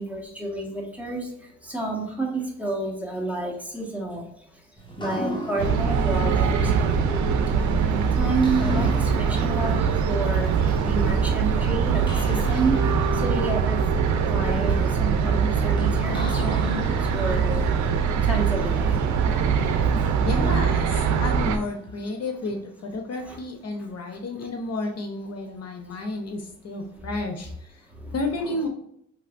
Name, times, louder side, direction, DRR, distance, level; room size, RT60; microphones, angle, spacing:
voice 1, 0.0-4.6 4.9-13.8 14.3-17.7 18.2-19.3 19.8-20.2 23.2-23.4 23.8-24.2 26.9-27.1 27.9-28.1 28.4-28.6, right 2 dB, 5° right, -2 dB, 1.5 m, -30 dB
sound 1, 4.8-22.6, equal, 15° left, 1.4 m, -39 dB
sound 2, 5.6-21.6, right 6 dB, 70° right, 0.7 m, -22 dB
voice 2, 20.2-27.8 28.1-28.7, left 2 dB, 55° left, 4 dB, 0.8 m, -31 dB
5.6 x 3.3 x 2.5 m, 0.73 s
cardioid pair, 90°, 30 cm